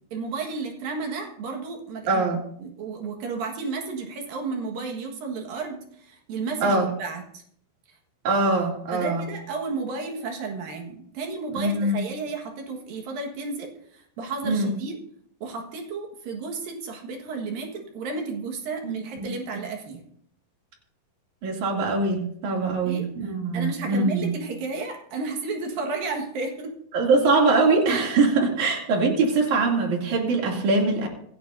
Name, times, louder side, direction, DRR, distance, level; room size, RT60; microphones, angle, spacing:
voice 1, 0.1-2.2 2.6-7.4 8.9-15.0 15.4-20.0 22.9-23.0 23.5-26.7, right 4 dB, 70° right, 2 dB, 3.3 m, -32 dB
voice 2, 2.1-2.4 6.6-6.9 8.2-9.3 11.5-12.0 14.4-14.7 18.8-19.3 21.4-24.3 26.9-31.1, right 3 dB, 55° right, -1 dB, 3.9 m, -23 dB
26.0 x 9.6 x 2.7 m, 0.67 s
omnidirectional pair, 4.4 m